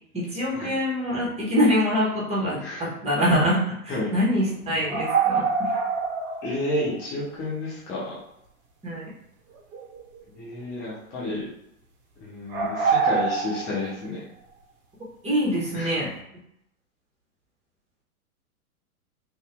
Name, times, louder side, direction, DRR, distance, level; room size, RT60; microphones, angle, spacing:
voice 1, 0.1-5.7 8.8-9.0 15.2-16.1, equal, 15° right, -6 dB, 1.2 m, -24 dB
voice 2, 2.6-2.9 3.9-4.1 6.4-8.2 10.4-11.5 12.2-14.2 15.7-15.9, left 2 dB, 10° left, -7 dB, 0.3 m, -31 dB
sound 1, 4.9-6.7 6.9-7.0 9.5-10.2 10.6-10.9 12.5-13.9, right 5 dB, 30° right, 0.8 m, -25 dB
2.9 x 2.7 x 3.3 m, 0.78 s
figure-of-eight pair, 105°, 45 cm